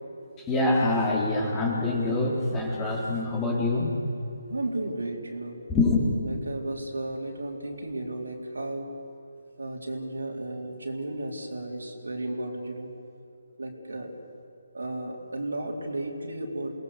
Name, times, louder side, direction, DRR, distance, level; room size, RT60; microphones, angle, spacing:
voice 1, 0.5-4.0 5.7-6.0, left 2 dB, 15° left, -3 dB, 4.0 m, -25 dB
voice 2, 4.5-5.6 6.2-8.9 9.6-12.9 13.6-14.1 14.7-16.7, right 2 dB, 70° right, 0 dB, 4.2 m, -34 dB
28.5 x 20.5 x 6.8 m, 2.7 s
figure-of-eight pair, 150°, 0 cm